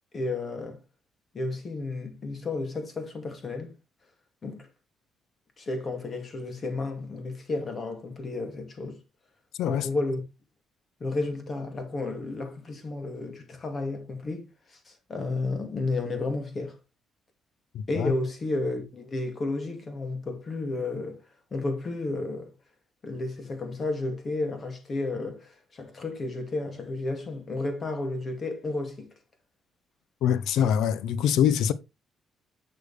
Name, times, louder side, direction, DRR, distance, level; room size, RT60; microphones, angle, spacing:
voice 1, 0.1-0.8 1.3-3.7 4.4-4.7 5.6-9.0 9.7-10.2 11.0-16.8 17.9-21.2 21.5-22.5 23.0-29.1, left 2 dB, 40° left, 2.2 m, -32 dB
voice 2, 9.6-9.9 17.7-18.1 30.2-31.7, left 9 dB, 85° left, 0.5 m, -24 dB
6.6 x 6.4 x 3.3 m
cardioid pair, 90°, 0 cm